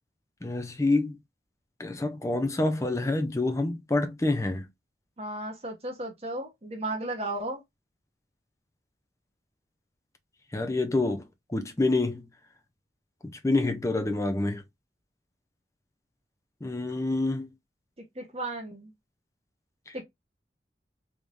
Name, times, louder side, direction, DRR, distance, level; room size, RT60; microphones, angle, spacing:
voice 1, 0.4-1.2 1.8-4.7 10.5-11.2 11.5-12.2 13.4-14.6 16.6-17.5, left 2 dB, 15° left, 0.5 m, -27 dB
voice 2, 5.2-7.6 18.2-18.9 19.9-20.0, right 2 dB, 35° right, 0.9 m, -34 dB
3.5 x 3.1 x 2.4 m
head